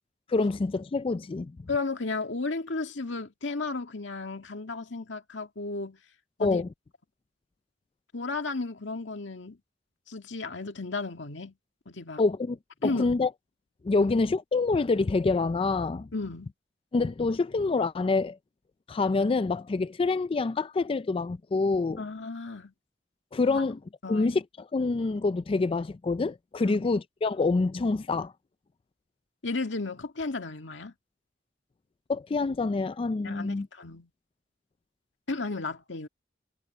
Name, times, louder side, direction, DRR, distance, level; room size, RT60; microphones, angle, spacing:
voice 1, 0.3-1.6 6.4-6.7 12.2-12.6 12.8-13.3 13.8-16.1 16.9-18.4 18.9-22.0 23.3-23.8 24.1-28.3 32.1-33.7, left 3 dB, 30° left, 0.4 m, -26 dB
voice 2, 1.7-6.0 6.4-6.6 8.1-9.6 10.1-11.5 11.9-12.2 12.8-13.1 14.0-14.1 16.1-16.5 22.0-22.7 23.5-23.6 24.0-24.3 26.7-26.8 29.4-30.9 33.2-34.1 35.3-36.1, left 3 dB, 90° left, 2.0 m, -34 dB
head